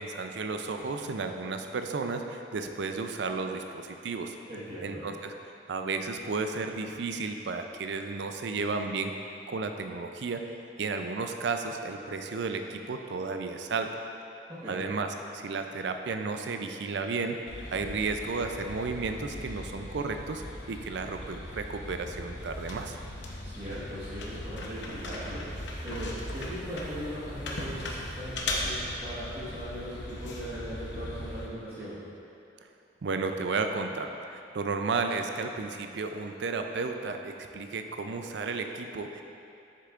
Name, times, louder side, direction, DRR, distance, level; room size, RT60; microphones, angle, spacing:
voice 1, 0.0-4.3 4.8-5.3 5.7-9.1 9.5-13.9 14.7-17.4 17.7-20.4 20.7-23.0 33.0-39.2, right 4 dB, 70° right, 6 dB, 0.4 m, -33 dB
voice 2, 4.5-5.0 14.5-14.9 23.4-25.4 25.8-32.0, equal, 30° right, -12 dB, 1.3 m, -39 dB
sound 1, 17.5-31.5, left 1 dB, 75° left, 0.8 m, -38 dB
7.7 x 6.7 x 2.5 m, 2.8 s
head